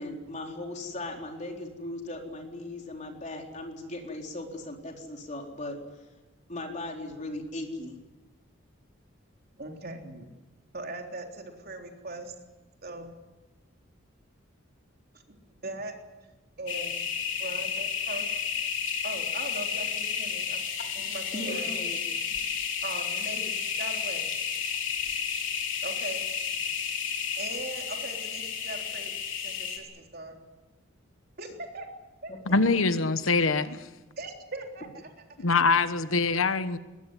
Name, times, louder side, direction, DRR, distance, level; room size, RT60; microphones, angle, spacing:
voice 1, 0.0-5.8 6.5-8.0 21.3-22.0 32.3-32.6, left 2 dB, 35° left, 4.2 m, -38 dB
voice 2, 9.6-10.3 10.7-12.3 12.8-13.1 15.5-15.9 16.6-17.0 17.4-18.3 19.0-20.6 20.9-21.8 22.8-24.3 25.8-26.3 27.4-29.2 29.4-30.4 31.4-31.9 32.2-32.4 34.2-35.1 35.4-35.5, right 2 dB, 50° right, 3.7 m, -39 dB
sound 1, 16.7-29.8, left 7 dB, 65° left, 4.2 m, -32 dB
voice 3, 32.5-33.9 35.4-36.8, left 4 dB, 85° left, 1.2 m, -24 dB
21.5 x 20.5 x 10.0 m
head